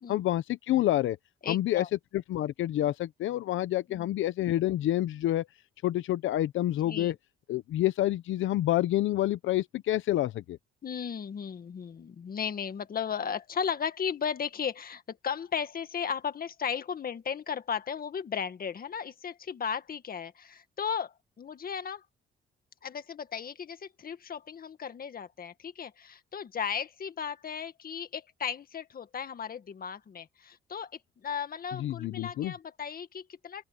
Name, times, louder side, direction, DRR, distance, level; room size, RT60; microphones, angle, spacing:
voice 1, 0.1-1.2 1.5-1.8 2.3-5.5 5.8-7.1 7.5-10.6 31.7-32.5, left 14 dB, 80° left, 0.8 m, -28 dB
voice 2, 1.4-1.9 3.9-4.1 6.8-7.2 10.8-22.0 22.8-30.9 31.2-33.6, left 7 dB, 50° left, 1.9 m, -35 dB
open air
cardioid pair, 90°, 20 cm